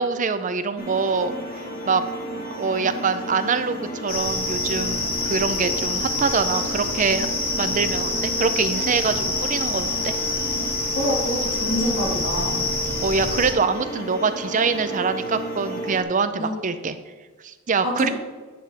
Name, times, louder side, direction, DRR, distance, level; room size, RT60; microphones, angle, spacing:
voice 1, 0.0-1.3 1.9-2.0 2.5-7.3 7.6-10.1 13.0-17.0 17.4-18.1, right 5 dB, 40° right, 10 dB, 0.5 m, -24 dB
sound 1, 0.8-16.0, right 1 dB, 45° left, 1.2 m, -33 dB
sound 2, 4.1-13.5, left 2 dB, 85° left, 2.0 m, -26 dB
voice 2, 10.9-12.6 16.4-16.5 17.8-18.1, equal, 65° left, -3 dB, 2.1 m, -26 dB
10.0 x 6.6 x 3.4 m, 1.4 s
head